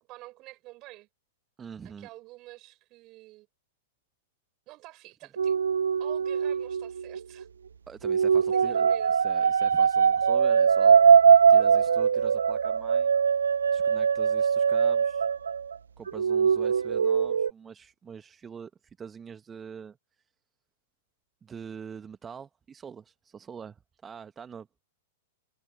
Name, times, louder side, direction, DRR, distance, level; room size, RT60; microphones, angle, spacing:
voice 1, 0.1-1.1 1.8-3.5 4.7-5.6 6.0-7.5 8.5-9.2, right 20 dB, 35° right, 6.8 m, -48 dB
voice 2, 1.6-2.1 7.9-11.0 11.5-13.1 13.7-15.3 16.0-20.0 21.4-24.7, right 6 dB, 20° right, 1.4 m, -44 dB
sound 1, 5.4-7.4 8.0-15.8 16.1-17.5, right 6 dB, 70° right, 0.6 m, -22 dB
figure-of-eight pair, 100°, 0 cm